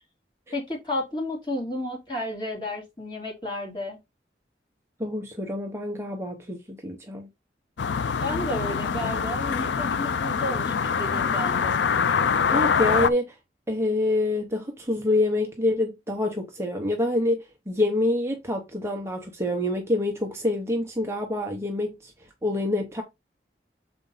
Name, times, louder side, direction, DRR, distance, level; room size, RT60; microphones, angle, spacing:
voice 1, 0.5-4.0 8.2-11.8, left 1 dB, 25° left, 2.9 m, -32 dB
voice 2, 5.0-7.3 12.5-13.4 13.7-22.1 22.4-23.0, left 1 dB, 15° right, 0.9 m, -26 dB
sound 1, 7.8-13.1, left 6 dB, 80° left, 0.4 m, -24 dB
6.9 x 4.3 x 3.9 m
head